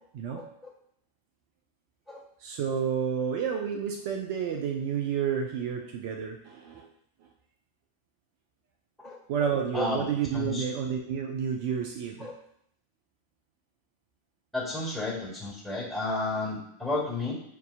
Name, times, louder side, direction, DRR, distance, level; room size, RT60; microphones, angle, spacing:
voice 1, 0.3-0.7 2.1-2.2 9.0-9.2 9.7-10.0 10.3-10.6 12.2-12.3 14.5-17.3, left 2 dB, 5° left, -6 dB, 1.5 m, -32 dB
voice 2, 2.4-6.9 9.3-12.3, right 7 dB, 50° right, 2 dB, 0.5 m, -30 dB
6.4 x 2.7 x 2.3 m, 0.69 s
figure-of-eight pair, 90°, 0 cm